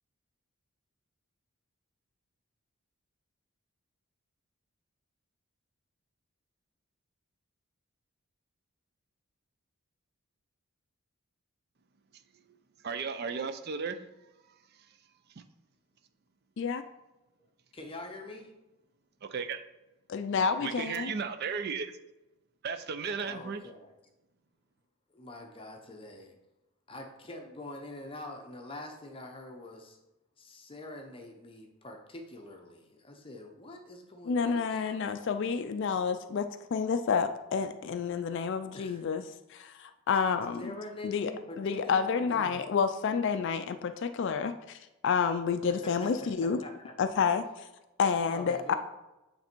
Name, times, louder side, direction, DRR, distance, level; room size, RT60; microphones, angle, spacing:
voice 1, 12.8-14.0 14.5-15.0 15.4-15.5 19.2-19.6 20.6-22.0 22.6-23.6, right 5 dB, 45° right, 9 dB, 0.5 m, -35 dB
voice 2, 17.8-18.5 23.1-23.9 25.1-26.3 26.9-30.0 30.4-35.2 38.7-39.0 40.6-42.6 45.7-46.1 46.6-47.0 48.3-48.7, left 2 dB, 25° left, 3 dB, 0.7 m, -45 dB
voice 3, 20.1-21.1 34.3-39.2 39.5-40.7 41.0-41.3 41.6-44.8 45.0-46.6 47.0-47.6 48.0-48.7, left 6 dB, 55° left, 10 dB, 0.3 m, -29 dB
8.5 x 3.3 x 4.4 m, 1.0 s
head